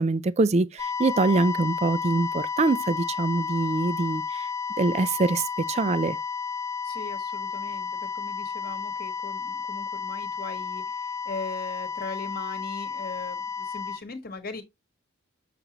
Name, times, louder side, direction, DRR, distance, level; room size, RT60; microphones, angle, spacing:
voice 1, 0.0-4.5 4.8-6.2, right 3 dB, 30° right, 0.3 m, -24 dB
sound 1, 0.8-14.0, left 6 dB, 15° left, 0.7 m, -32 dB
voice 2, 6.8-14.6, left 3 dB, 45° left, 1.2 m, -39 dB
6.6 x 6.0 x 2.9 m
head